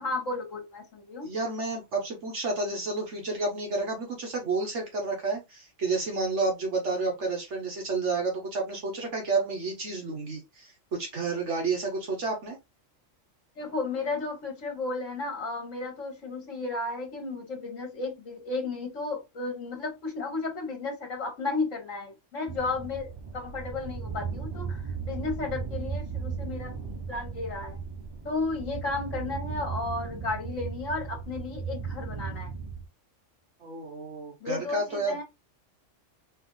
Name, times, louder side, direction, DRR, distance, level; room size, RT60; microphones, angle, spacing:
voice 1, 0.0-1.3 13.6-27.8 28.2-32.5 34.4-35.2, left 3 dB, 75° left, 1.6 m, -33 dB
voice 2, 1.2-12.6 33.6-35.2, right 3 dB, 65° right, 1.3 m, -30 dB
sound 1, 22.5-32.9, right 5 dB, 30° right, 0.5 m, -36 dB
4.1 x 2.6 x 3.7 m
omnidirectional pair, 1.3 m